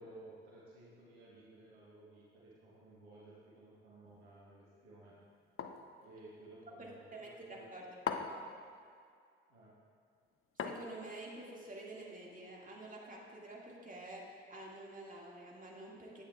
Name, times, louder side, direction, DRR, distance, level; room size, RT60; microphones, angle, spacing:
voice 1, 0.0-5.2 6.0-7.7 9.5-9.8, right 2 dB, 85° right, -6 dB, 1.4 m, -56 dB
sound 1, 5.6-5.9 8.1-8.5 10.6-11.2, left 6 dB, 45° left, 0.7 m, -39 dB
voice 2, 6.8-7.9 8.2-8.5 10.6-16.2, right 2 dB, 25° right, -3 dB, 1.9 m, -49 dB
11.5 x 8.7 x 2.3 m, 2.3 s
hypercardioid pair, 45°, 30 cm